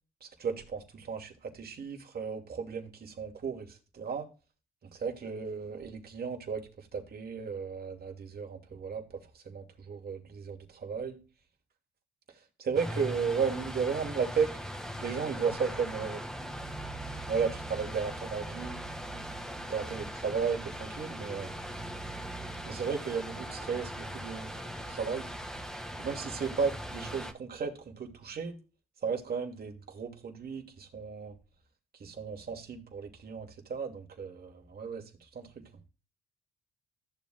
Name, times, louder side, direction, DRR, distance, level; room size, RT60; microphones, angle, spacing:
voice 1, 0.2-4.3 4.9-9.0 9.3-11.2 12.6-14.5 15.0-16.2 17.3-18.8 19.7-21.5 22.7-24.5 24.9-25.3 26.0-28.6 29.0-31.3 32.0-35.0 35.3-35.6, right 6 dB, 50° right, 2.8 m, -34 dB
sound 1, 12.7-27.3, equal, ahead, 2.2 m, -40 dB
14.5 x 7.3 x 2.5 m
hypercardioid pair, 50°, 20 cm